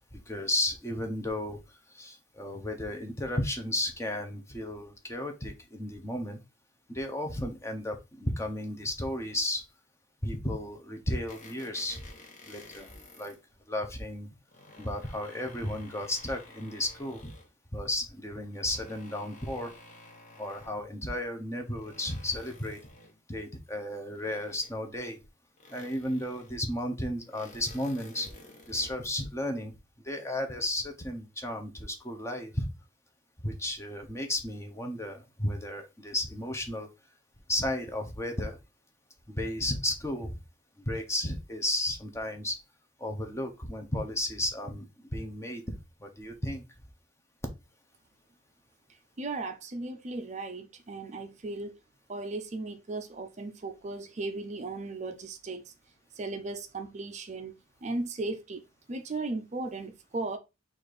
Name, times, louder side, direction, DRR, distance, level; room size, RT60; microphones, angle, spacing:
voice 1, 0.1-6.4 6.9-9.6 10.2-12.0 12.5-12.9 13.2-13.3 13.7-14.3 14.8-17.3 17.7-19.7 20.4-22.8 23.3-25.2 25.7-28.3 28.7-29.7 30.0-32.7 33.4-36.9 37.5-38.6 39.3-40.4 40.9-42.6 43.0-46.6, left 1 dB, 15° left, 0.6 m, -33 dB
sound 1, 11.3-13.4 14.3-17.6 18.4-20.8 21.5-23.2 24.1-25.0 25.6-26.6 27.2-29.2, left 2 dB, 40° left, 1.0 m, -52 dB
voice 2, 49.2-51.8 52.1-55.7 56.1-57.5 57.8-60.4, right 3 dB, 35° right, 0.5 m, -36 dB
4.1 x 2.5 x 4.7 m
head